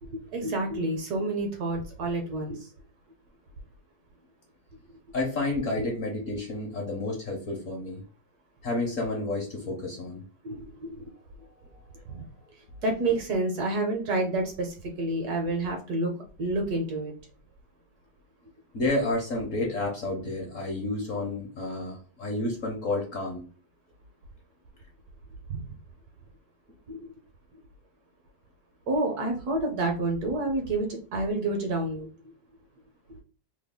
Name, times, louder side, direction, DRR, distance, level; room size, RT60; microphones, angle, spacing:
voice 1, 0.0-2.7 5.8-5.9 10.4-11.0 11.6-12.3 12.8-16.1 16.4-17.1 25.5-25.8 26.9-27.1 28.9-32.1 33.1-33.2, right 2 dB, 65° right, 3 dB, 1.1 m, -29 dB
voice 2, 5.1-8.0 8.6-10.2 18.7-23.4, left 2 dB, 55° left, 0 dB, 0.9 m, -30 dB
3.2 x 2.3 x 3.5 m, 0.38 s
omnidirectional pair, 2.0 m